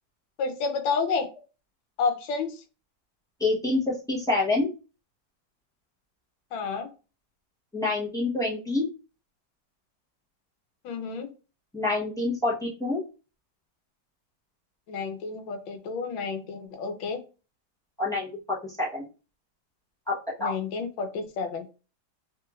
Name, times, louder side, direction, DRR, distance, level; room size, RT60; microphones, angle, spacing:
voice 1, 0.4-1.3 2.0-2.6 6.5-6.9 10.8-11.3 14.9-17.2 20.4-21.7, left 5 dB, 90° left, 7 dB, 1.5 m, -30 dB
voice 2, 3.4-4.7 7.7-8.9 11.7-13.0 18.0-19.0 20.1-20.5, left 2 dB, 5° left, -7 dB, 0.4 m, -27 dB
3.4 x 3.0 x 2.4 m, 0.33 s
omnidirectional pair, 2.1 m